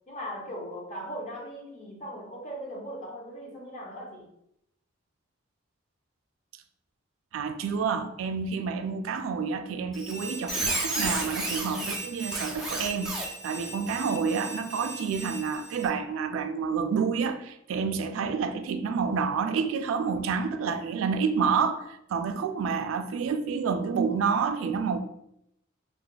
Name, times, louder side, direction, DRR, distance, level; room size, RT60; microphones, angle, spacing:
voice 1, 0.1-4.3, equal, 35° left, 0.8 m, -39 dB
voice 2, 7.3-25.0, right 5 dB, 80° right, 0.3 m, -29 dB
Squeak, 9.9-15.9, right 2 dB, ahead, 0.4 m, -34 dB
2.4 x 2.3 x 3.9 m
head